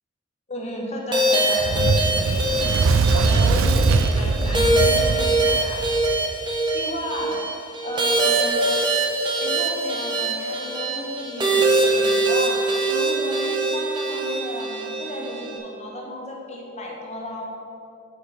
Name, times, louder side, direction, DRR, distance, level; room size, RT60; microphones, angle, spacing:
voice 1, 0.5-2.5 3.2-5.8 6.7-7.4 7.8-8.6 9.4-12.6 12.9-17.5, left 1 dB, 35° left, -1 dB, 1.5 m, -33 dB
sound 1, 1.1-15.6, right 2 dB, 25° right, 1.2 m, -23 dB
Fire, 1.6-6.2, right 4 dB, 90° right, 0.4 m, -21 dB
8.1 x 6.5 x 6.1 m, 2.8 s
head